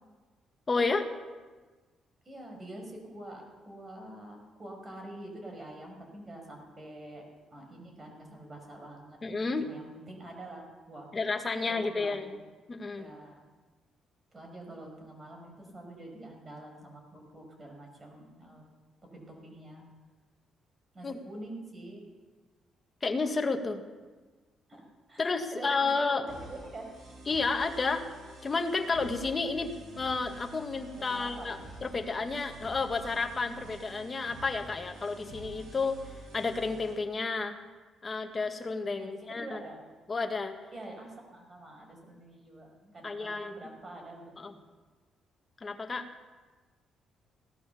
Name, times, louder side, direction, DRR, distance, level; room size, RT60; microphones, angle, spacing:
voice 1, 0.7-1.1 9.2-9.7 11.1-12.4 12.7-13.1 21.0-21.2 23.0-23.8 25.2-26.3 27.3-28.1 28.4-36.0 36.3-37.6 38.0-39.6 40.1-40.6 43.0-43.5 44.4-44.5 45.6-46.1, left 4 dB, 30° left, 5 dB, 1.8 m, -31 dB
voice 2, 2.3-7.2 7.5-9.2 9.4-11.1 11.7-12.4 12.9-13.4 14.3-18.6 19.1-19.8 20.9-22.0 24.7-24.8 25.1-26.9 30.9-31.6 39.0-39.8 40.7-44.6, right 1 dB, 30° right, 1 dB, 5.6 m, -46 dB
sound 1, 26.3-36.9, right 1 dB, 60° right, 6.8 m, -48 dB
17.0 x 12.0 x 7.0 m, 1.3 s
cardioid pair, 90°, 0 cm